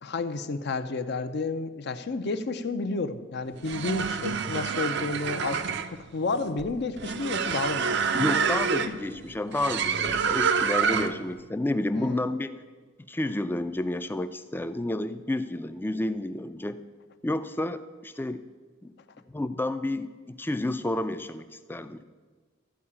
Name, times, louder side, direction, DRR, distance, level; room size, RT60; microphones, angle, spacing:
voice 1, 0.0-5.7 6.1-8.0 11.9-12.2, left 3 dB, 55° left, 10 dB, 0.6 m, -31 dB
sound 1, 3.5-11.3, right 6 dB, 60° right, 0.5 m, -28 dB
voice 2, 8.1-12.5 13.1-16.8 17.2-18.4 18.8-18.9 19.3-22.0, left 1 dB, 10° left, 11 dB, 0.4 m, -30 dB
13.0 x 4.7 x 8.6 m, 1.4 s
head